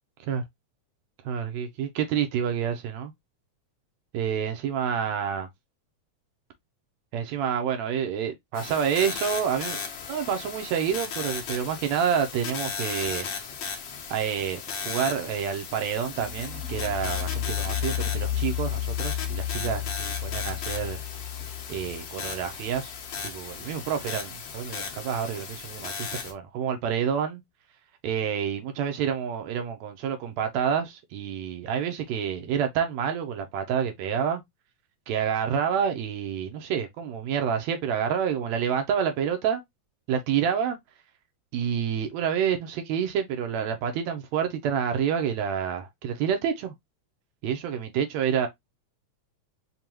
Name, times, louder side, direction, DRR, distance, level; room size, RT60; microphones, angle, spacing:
voice 1, 1.2-3.1 4.1-5.5 7.1-9.8 10.1-13.3 14.1-21.0 21.7-23.0 23.2-27.4 28.0-34.4 35.1-39.6 40.1-40.8 41.5-46.7 47.4-48.5, right 8 dB, 80° right, 2.0 m, -28 dB
sound 1, 8.5-26.3, left 6 dB, 85° left, 1.0 m, -36 dB
sound 2, 16.1-23.8, left 11 dB, 45° right, 1.0 m, -33 dB
5.2 x 2.3 x 2.9 m
omnidirectional pair, 3.3 m